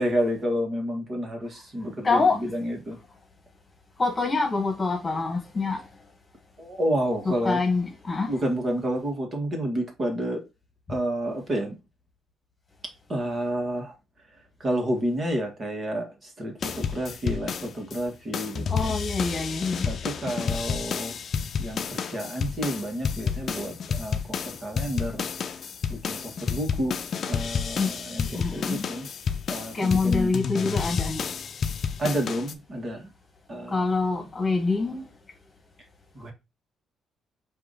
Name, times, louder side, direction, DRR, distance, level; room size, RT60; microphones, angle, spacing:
voice 1, 0.0-3.0 6.6-7.6 8.3-10.4 10.9-11.8 13.1-13.9 14.6-19.0 19.8-21.2 21.6-25.3 25.9-27.0 27.3-29.1 29.5-30.3 32.0-33.1 33.5-33.9 34.2-34.3 36.2-36.3, equal, 40° right, 1.8 m, -30 dB
voice 2, 2.0-2.4 4.0-5.8 7.2-8.3 18.7-19.9 27.8-27.9 28.3-28.9 29.7-31.3 33.7-35.0, left 3 dB, 25° left, 1.4 m, -25 dB
sound 1, 16.6-18.0 18.3-32.5, left 6 dB, 55° left, 0.5 m, -30 dB
4.8 x 2.8 x 3.9 m
cardioid pair, 90°, 0 cm